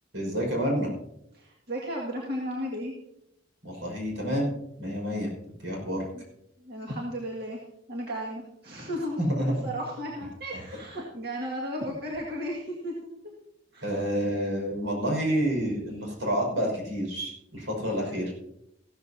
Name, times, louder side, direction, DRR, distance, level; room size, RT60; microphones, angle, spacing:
voice 1, 0.1-0.9 3.6-4.5 4.8-5.3 5.6-6.0 9.2-9.7 10.5-10.6 13.8-18.3, equal, 90° right, 0 dB, 5.5 m, -28 dB
voice 2, 1.3-2.9 6.1-6.2 6.6-7.6 7.9-12.9 13.7-14.0, equal, 55° right, -3 dB, 2.0 m, -34 dB
15.5 x 13.5 x 2.8 m, 0.80 s
head